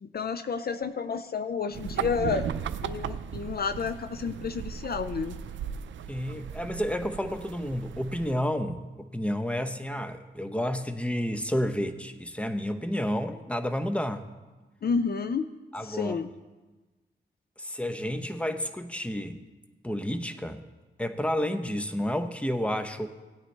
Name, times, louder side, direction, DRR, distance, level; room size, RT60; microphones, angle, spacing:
voice 1, 0.0-2.5 2.8-5.4 14.8-15.5 15.8-16.3, left 5 dB, 55° left, 11 dB, 0.5 m, -30 dB
sound 1, 1.7-8.3, right 8 dB, 85° right, 0.4 m, -36 dB
voice 2, 6.1-14.3 15.7-16.2 17.6-19.4 19.8-20.6 21.0-23.1, equal, 5° left, 8 dB, 0.9 m, -30 dB
17.5 x 8.9 x 3.3 m, 1.2 s
cardioid pair, 60°, 19 cm